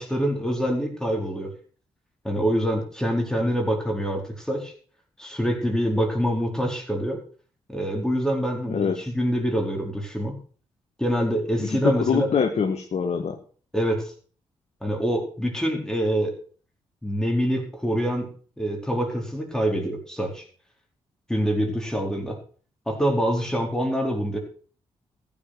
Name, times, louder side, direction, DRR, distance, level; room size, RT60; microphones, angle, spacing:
voice 1, 0.0-1.5 2.2-4.7 5.2-7.2 7.7-10.4 11.0-12.3 13.7-14.1 14.8-16.3 17.0-18.3 18.6-20.4 21.3-22.4 22.9-24.4, equal, 5° left, 1 dB, 4.4 m, -25 dB
voice 2, 11.6-13.4, left 6 dB, 55° left, 4 dB, 1.6 m, -24 dB
14.5 x 7.3 x 6.2 m, 0.42 s
hypercardioid pair, 40°, 14 cm